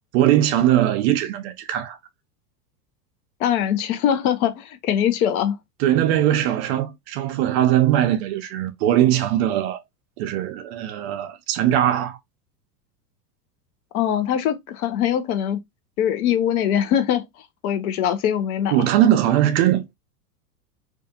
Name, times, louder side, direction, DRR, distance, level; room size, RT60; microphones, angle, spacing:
voice 1, 0.1-2.0 5.8-9.8 10.2-12.2 18.7-19.9, right 12 dB, 45° right, 0.4 m, -20 dB
voice 2, 3.4-5.6 13.9-15.6 16.0-17.2 17.6-18.7, left 9 dB, 60° left, 0.7 m, -22 dB
2.5 x 2.3 x 2.6 m
hypercardioid pair, 115°, 48 cm